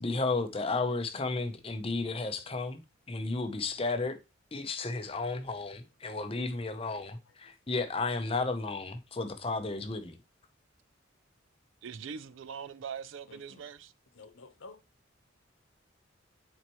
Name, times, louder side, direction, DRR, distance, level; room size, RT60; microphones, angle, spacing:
voice 1, 0.0-2.8 3.1-4.2 4.5-10.2, left 3 dB, 30° left, 0.7 m, -33 dB
voice 2, 6.9-7.5 13.3-13.7 14.1-14.8, left 3 dB, 75° left, 0.9 m, -53 dB
voice 3, 11.8-13.9, right 7 dB, 75° right, 0.4 m, -42 dB
7.2 x 4.5 x 3.0 m
head